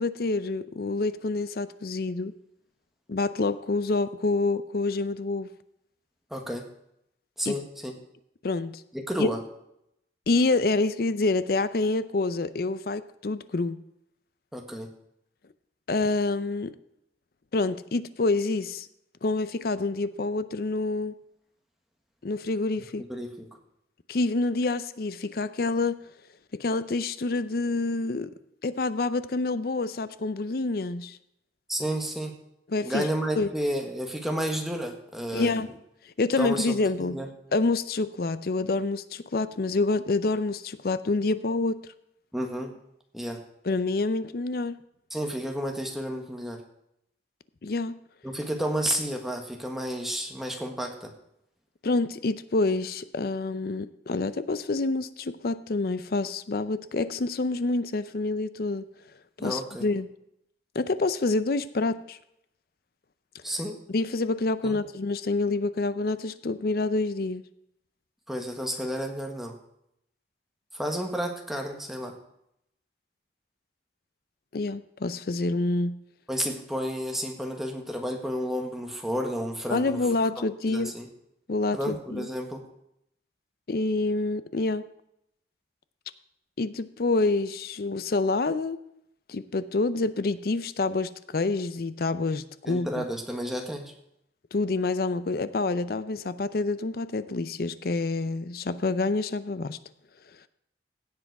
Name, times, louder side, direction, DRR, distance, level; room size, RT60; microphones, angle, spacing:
voice 1, 0.0-2.3 3.1-5.5 7.5-7.6 8.4-8.8 9.2-9.3 10.3-13.8 15.9-16.7 17.5-18.9 19.2-21.2 22.2-23.0 24.1-26.0 26.5-28.3 28.6-31.2 32.7-33.1 33.4-33.5 35.3-35.7 36.2-37.2 37.5-41.9 43.7-44.8 47.6-48.0 51.8-58.9 59.4-60.1 60.7-62.2 63.9-67.4 74.5-76.0 79.7-80.9 81.5-82.3 83.7-84.9 86.6-88.8 89.3-93.0 94.5-99.8, left 3 dB, 55° left, 14 dB, 0.5 m, -27 dB
voice 2, 6.3-6.7 7.4-7.9 8.9-9.4 14.5-14.9 23.1-23.6 31.7-32.4 32.8-35.6 36.4-37.3 42.3-42.8 43.1-43.4 45.1-46.6 48.2-51.1 59.4-59.9 63.4-63.8 64.6-64.8 68.3-69.6 70.7-72.2 76.3-80.1 80.4-81.1 81.7-82.7 92.6-93.9, equal, ahead, 2 dB, 1.4 m, -31 dB
16.0 x 7.7 x 4.7 m, 0.79 s
head